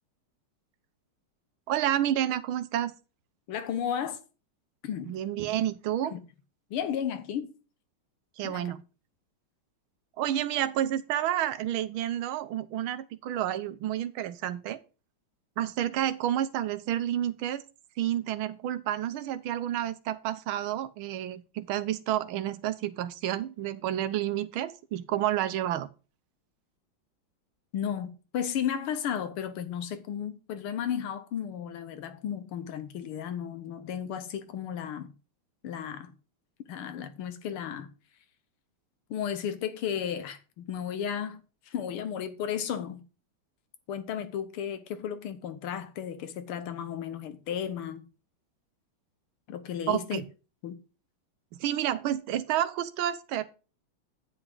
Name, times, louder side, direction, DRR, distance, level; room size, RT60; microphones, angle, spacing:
voice 1, 1.7-2.9 5.1-6.2 8.4-8.8 10.2-14.8 15.6-17.6 18.0-25.9 49.9-50.2 51.6-53.5, right 11 dB, 75° right, 1.5 m, -30 dB
voice 2, 3.5-4.2 4.8-5.2 6.1-6.2 6.7-7.5 8.4-8.7 27.7-35.1 35.6-36.1 36.7-37.9 39.1-43.0 43.9-48.0 49.5-50.2 50.6-50.8, left 8 dB, 80° left, 1.9 m, -34 dB
9.5 x 7.9 x 3.8 m
omnidirectional pair, 2.4 m